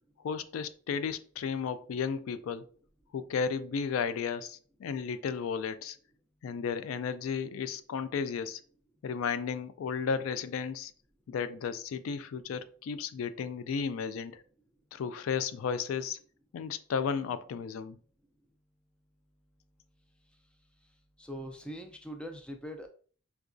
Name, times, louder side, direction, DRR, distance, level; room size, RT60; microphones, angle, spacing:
voice 1, 0.2-2.7 3.1-6.0 6.4-8.6 9.0-10.9 11.3-14.4 14.9-16.2 16.5-18.0, left 6 dB, 85° left, 0.3 m, -34 dB
voice 2, 21.2-22.9, equal, 5° left, 0.3 m, -42 dB
4.7 x 2.2 x 2.5 m
head